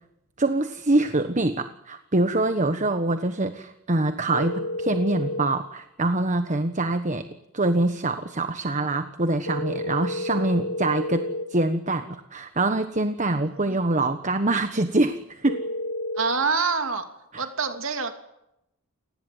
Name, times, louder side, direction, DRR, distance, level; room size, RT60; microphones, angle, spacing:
voice 1, 0.4-7.3 7.5-11.2 11.5-15.6 17.3-17.5, right 2 dB, 35° right, 9 dB, 1.3 m, -24 dB
sound 1, 4.3-5.5 9.4-11.5 15.4-16.3, left 1 dB, 80° left, 7.7 m, -30 dB
voice 2, 16.2-17.0 17.4-18.1, right 5 dB, 65° right, 7 dB, 2.9 m, -26 dB
29.0 x 19.0 x 9.4 m, 0.86 s
head